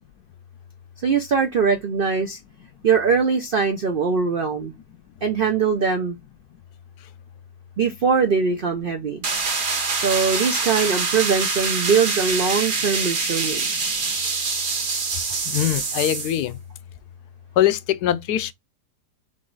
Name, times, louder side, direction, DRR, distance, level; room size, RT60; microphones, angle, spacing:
voice 1, 1.0-2.4 2.8-4.7 5.2-6.2 7.8-9.2 9.9-13.9, right 5 dB, 75° right, 0.5 m, -22 dB
sound 1, 9.2-16.4, right 4 dB, 40° right, 0.9 m, -25 dB
voice 2, 15.5-16.5 17.6-18.5, left 12 dB, 75° left, 1.1 m, -22 dB
3.9 x 3.4 x 3.8 m
omnidirectional pair, 1.8 m